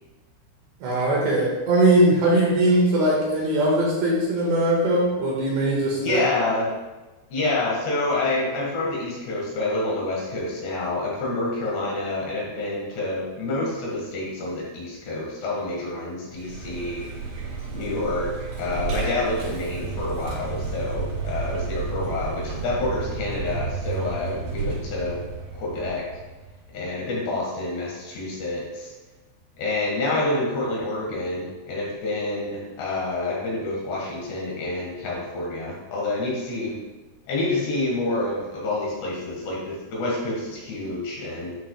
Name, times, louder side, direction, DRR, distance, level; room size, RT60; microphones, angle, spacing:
voice 1, 0.8-6.2 18.7-19.0, right 1 dB, 65° right, -4 dB, 3.4 m, -21 dB
voice 2, 6.0-6.7 7.3-17.1 17.7-25.2 25.5-26.0 26.7-28.9 29.6-36.8 37.3-41.6, left 2 dB, 65° left, -3 dB, 3.3 m, -28 dB
Vehicle, 16.3-26.7, right 4 dB, 90° right, 5.0 m, -32 dB
12.0 x 8.8 x 2.3 m, 1.2 s
omnidirectional pair, 5.9 m